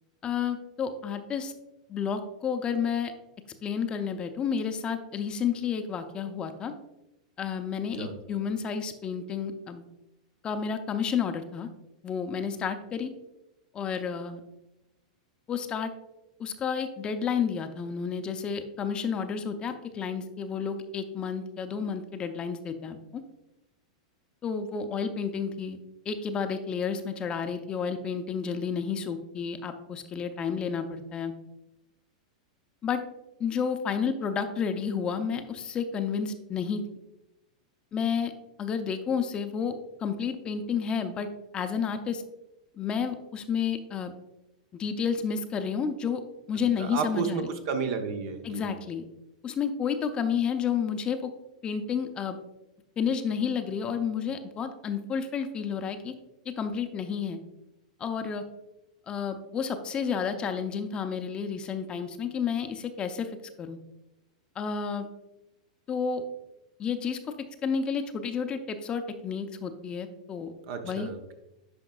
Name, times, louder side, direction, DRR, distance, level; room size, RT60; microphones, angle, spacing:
voice 1, 0.2-1.5 1.9-3.1 3.6-6.7 7.4-9.8 10.4-11.7 12.0-13.1 13.7-14.4 15.5-15.9 16.4-23.2 24.4-25.8 26.1-31.3 32.8-33.0 33.4-36.8 37.9-38.3 38.6-39.7 40.0-42.2 42.8-44.1 44.8-46.2 46.5-47.5 48.4-49.1 49.4-51.3 51.6-52.4 53.0-56.1 56.5-57.4 58.0-58.4 59.1-63.3 63.6-63.8 64.6-65.1 65.9-66.2 66.8-67.2 67.6-70.5 70.8-71.1, left 6 dB, 25° left, 8 dB, 0.6 m, -31 dB
voice 2, 46.8-48.7 70.7-71.3, right 6 dB, 55° right, 6 dB, 0.9 m, -32 dB
9.7 x 5.2 x 2.3 m, 0.93 s
hypercardioid pair, 120°, 4 cm